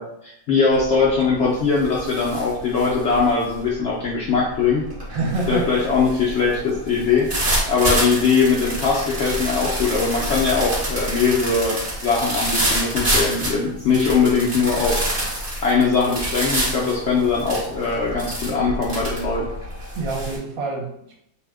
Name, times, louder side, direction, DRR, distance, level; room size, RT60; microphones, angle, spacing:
voice 1, 0.0-4.8 5.5-7.3 7.7-15.0 15.6-19.5, left 5 dB, 70° left, -5 dB, 0.6 m, -21 dB
sound 1, 0.7-1.1 1.4-20.4, right 1 dB, 35° right, 0.6 m, -27 dB
voice 2, 5.1-5.7 19.9-21.1, right 3 dB, 70° right, -1 dB, 1.0 m, -26 dB
2.7 x 2.1 x 3.4 m, 0.75 s
omnidirectional pair, 1.7 m